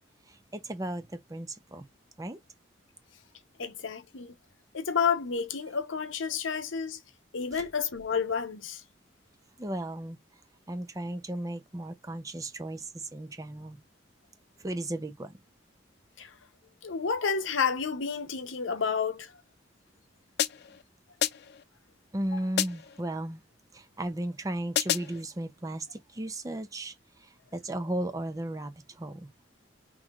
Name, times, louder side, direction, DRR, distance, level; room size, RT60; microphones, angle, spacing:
voice 1, 0.3-1.9 2.2-2.4 9.6-10.2 10.7-13.8 14.6-15.4 22.1-23.4 23.7-29.3, right 1 dB, 15° right, 0.5 m, -35 dB
voice 2, 3.6-4.3 4.7-7.0 7.3-8.8 16.2-16.3 16.8-19.4, left 6 dB, 80° left, 0.8 m, -30 dB
sound 1, 20.4-20.8 21.2-21.6 22.6-23.0 24.8-25.2, left 10 dB, 55° left, 0.3 m, -30 dB
5.7 x 3.1 x 2.4 m
head